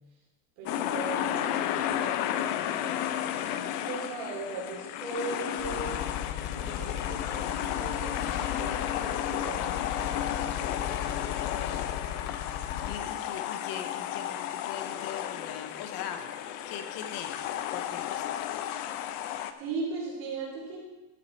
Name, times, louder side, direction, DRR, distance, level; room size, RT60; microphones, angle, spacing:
voice 1, 0.6-6.0 6.5-8.3 8.6-11.1 19.0-19.3 19.6-20.8, right 3 dB, 45° right, -4 dB, 4.3 m, -39 dB
sound 1, 0.7-19.5, left 11 dB, 65° left, 0.8 m, -33 dB
sound 2, 5.6-13.0, left 9 dB, 25° left, 0.4 m, -36 dB
voice 2, 12.8-16.3 16.7-17.4 17.7-18.3, left 8 dB, 45° left, 7 dB, 1.1 m, -40 dB
13.0 x 7.8 x 4.5 m, 1.1 s
cardioid pair, 180°, 49 cm